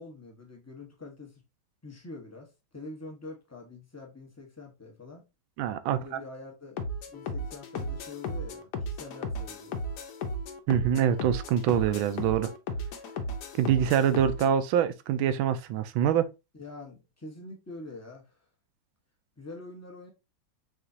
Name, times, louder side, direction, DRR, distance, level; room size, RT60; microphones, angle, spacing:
voice 1, 0.0-1.4 1.8-5.3 5.9-6.8 7.1-9.8 16.5-18.2 19.4-20.1, left 3 dB, 15° left, 0.5 m, -45 dB
voice 2, 5.6-6.0 10.7-12.5 13.6-16.3, right 9 dB, 80° right, 1.4 m, -25 dB
sound 1, 6.8-14.5, left 1 dB, 65° left, 1.2 m, -35 dB
5.0 x 3.4 x 2.7 m
omnidirectional pair, 2.2 m